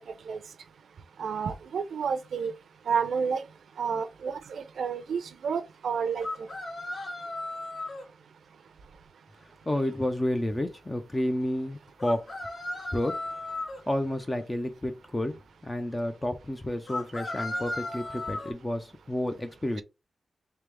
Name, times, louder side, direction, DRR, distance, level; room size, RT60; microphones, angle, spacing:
voice 1, 1.2-2.5 2.9-3.4 3.8-6.3, right 6 dB, 85° right, 0.6 m, -30 dB
sound 1, 6.2-8.0 12.0-13.8 16.9-18.5, left 2 dB, 50° left, 1.4 m, -35 dB
voice 2, 9.7-12.3 12.9-13.2 13.9-19.8, left 1 dB, 15° left, 0.4 m, -30 dB
3.4 x 3.3 x 3.3 m
wide cardioid pair, 175°, 0 cm